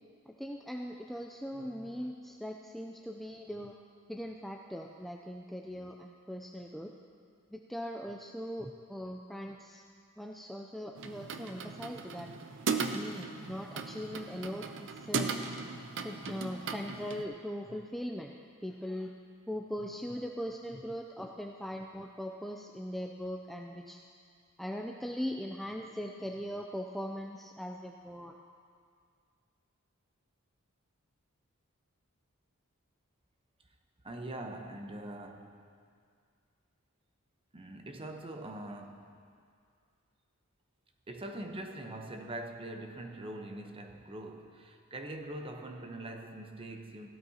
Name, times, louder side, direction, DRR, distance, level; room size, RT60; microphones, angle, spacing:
voice 1, 0.3-3.7 4.1-6.9 7.5-9.8 10.2-12.3 12.9-15.3 16.0-18.3 18.6-19.1 19.5-24.0 24.6-28.4, equal, ahead, 1 dB, 0.4 m, -40 dB
sound 1, 10.9-17.2, right 4 dB, 60° right, 0.6 m, -37 dB
voice 2, 34.0-35.6 37.5-39.1 41.1-47.1, right 1 dB, 25° right, 4 dB, 0.8 m, -43 dB
15.5 x 12.5 x 2.8 m, 2.2 s
head